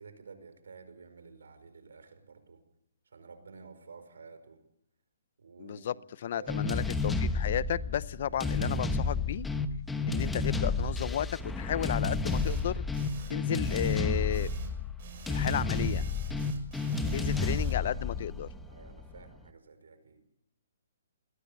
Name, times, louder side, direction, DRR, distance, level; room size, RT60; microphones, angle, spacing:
voice 1, 0.0-2.6 3.1-4.6 5.4-6.0 6.3-6.6 17.0-17.9 18.6-20.2, right 4 dB, 85° right, 10 dB, 5.0 m, -52 dB
voice 2, 5.6-9.5 10.1-12.8 13.3-14.5 15.3-16.0 17.1-18.5, left 10 dB, 50° left, 19 dB, 0.7 m, -33 dB
sound 1, 6.5-19.2, left 3 dB, 5° left, 1.1 m, -31 dB
sound 2, 12.2-12.7 12.9-13.4 13.6-14.0 14.3-14.7 15.0-17.7, right 6 dB, 50° right, 6.0 m, -49 dB
21.5 x 18.5 x 7.0 m, 0.78 s
hypercardioid pair, 150°, 0 cm